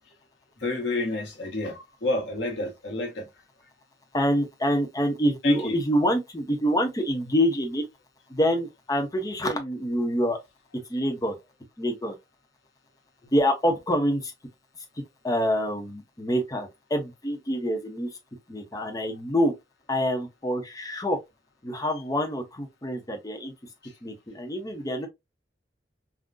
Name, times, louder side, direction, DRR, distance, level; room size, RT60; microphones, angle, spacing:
voice 1, 0.6-3.3 5.4-5.8, left 2 dB, 85° left, 1.0 m, -29 dB
voice 2, 4.1-7.8 8.3-10.4 10.9-11.4 11.8-12.1 13.3-14.3 15.2-18.1 18.5-19.5 19.9-21.2 21.6-23.5 24.0-25.1, equal, 20° left, 0.7 m, -26 dB
3.6 x 2.1 x 2.4 m
head